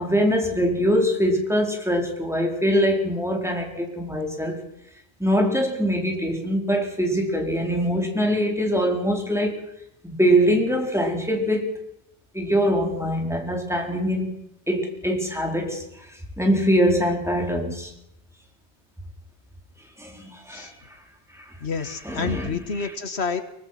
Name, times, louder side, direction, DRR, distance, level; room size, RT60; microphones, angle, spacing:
voice 1, 0.0-4.6 5.2-9.6 10.0-11.7 12.3-14.3 14.7-15.8 16.4-17.9 20.0-20.7 21.3-21.4 22.0-22.9, equal, 5° right, 1 dB, 4.6 m, -23 dB
voice 2, 21.6-23.4, left 5 dB, 85° left, 10 dB, 1.9 m, -29 dB
24.0 x 20.5 x 6.0 m, 0.81 s
omnidirectional pair, 1.1 m